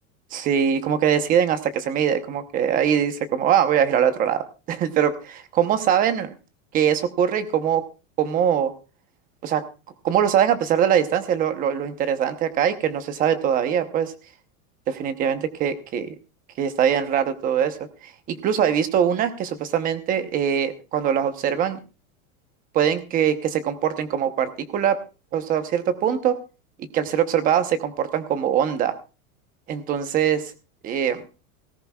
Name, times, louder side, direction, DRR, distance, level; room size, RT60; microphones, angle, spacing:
voice 1, 0.3-6.3 6.7-7.8 8.2-8.7 9.4-9.6 10.0-14.1 14.9-16.1 16.6-17.8 18.3-21.8 22.7-25.0 25.3-26.4 26.9-28.9 29.7-30.5 30.8-31.2, right 9 dB, 20° right, 10 dB, 0.9 m, -22 dB
18.0 x 15.5 x 2.4 m, 0.32 s
supercardioid pair, 175°, 40 cm